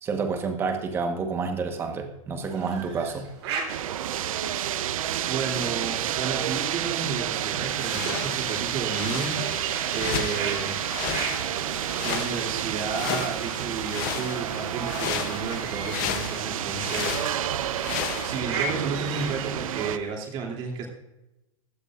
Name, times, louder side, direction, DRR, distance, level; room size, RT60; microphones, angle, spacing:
voice 1, 0.0-3.3, right 5 dB, 15° right, 5 dB, 1.1 m, -29 dB
sound 1, 2.4-20.1, right 5 dB, 55° right, 3.6 m, -39 dB
sound 2, 3.7-20.0, right 11 dB, 90° right, 0.7 m, -30 dB
voice 2, 5.2-9.4 9.9-10.8 12.0-17.6 18.2-20.9, right 5 dB, 30° right, 0 dB, 2.8 m, -32 dB
sound 3, 7.7-18.4, left 11 dB, 35° left, 0.7 m, -35 dB
15.5 x 13.0 x 2.4 m, 0.93 s
supercardioid pair, 170°, 17 cm